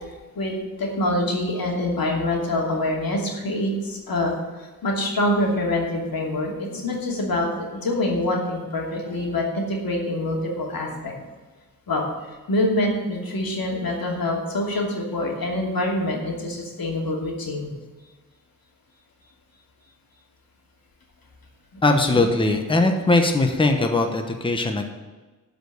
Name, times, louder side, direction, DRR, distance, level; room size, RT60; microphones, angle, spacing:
voice 1, 0.4-11.1 11.9-12.0 12.5-17.7 22.1-22.2 23.8-23.9, left 1 dB, 85° left, -1 dB, 2.7 m, -25 dB
voice 2, 21.8-24.9, left 2 dB, 15° left, 5 dB, 1.0 m, -20 dB
11.5 x 5.2 x 8.0 m, 1.3 s
wide cardioid pair, 115°, 35 cm